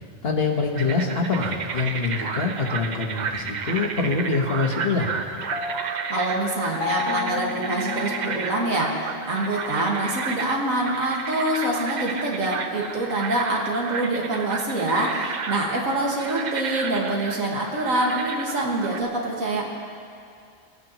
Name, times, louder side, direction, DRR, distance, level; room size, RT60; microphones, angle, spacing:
voice 1, 0.2-5.2, left 4 dB, 50° left, 0 dB, 1.3 m, -25 dB
sound 1, 0.7-19.0, right 5 dB, 50° right, 0.5 m, -32 dB
Piano, 5.5-9.4, left 5 dB, 85° left, 1.2 m, -32 dB
voice 2, 6.1-19.6, right 2 dB, 80° right, -2 dB, 2.0 m, -25 dB
20.0 x 9.4 x 2.9 m, 2.4 s
omnidirectional pair, 1.3 m